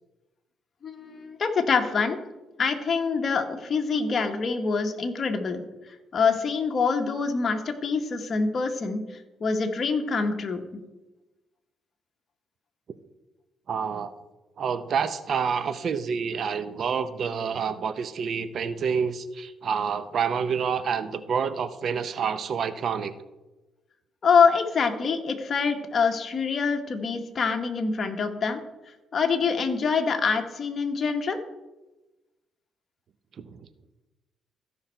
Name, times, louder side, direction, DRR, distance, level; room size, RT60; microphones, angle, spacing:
voice 1, 0.8-2.2 2.6-9.0 9.4-10.6 24.2-28.6 29.1-31.4, left 5 dB, 45° left, 5 dB, 1.2 m, -25 dB
voice 2, 13.7-14.1 14.6-23.1 33.4-33.6, right 6 dB, 55° right, 12 dB, 0.6 m, -28 dB
14.5 x 5.4 x 4.4 m, 1.1 s
cardioid pair, 90°, 0 cm